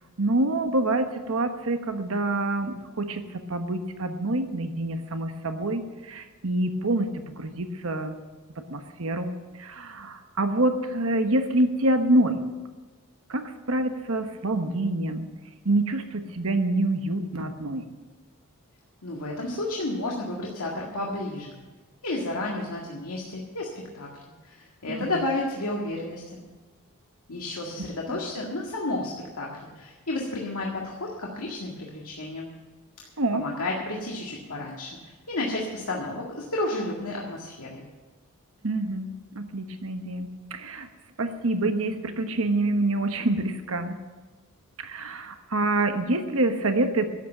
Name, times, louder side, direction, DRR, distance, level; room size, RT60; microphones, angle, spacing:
voice 1, 0.2-8.1 8.7-12.4 13.3-15.3 15.6-17.8 24.9-25.1 27.8-28.2 33.2-33.4 38.6-40.9 41.2-44.0 44.8-47.1, right 2 dB, 65° right, 7 dB, 1.2 m, -26 dB
voice 2, 19.0-21.6 22.0-26.4 27.3-32.5 33.3-37.8, left 2 dB, 85° left, -2 dB, 1.9 m, -32 dB
12.0 x 8.1 x 8.8 m, 1.3 s
head